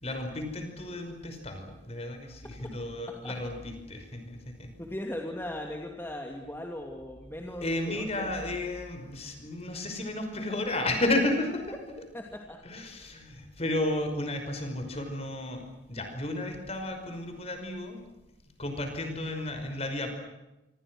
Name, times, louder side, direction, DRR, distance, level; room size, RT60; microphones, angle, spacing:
voice 1, 0.0-4.7 7.6-11.7 12.6-18.0 18.6-20.1, left 1 dB, 30° left, 6 dB, 5.5 m, -33 dB
voice 2, 4.8-8.3 12.1-12.6, left 1 dB, 10° left, 1 dB, 2.6 m, -38 dB
27.0 x 25.5 x 6.3 m, 1.0 s
head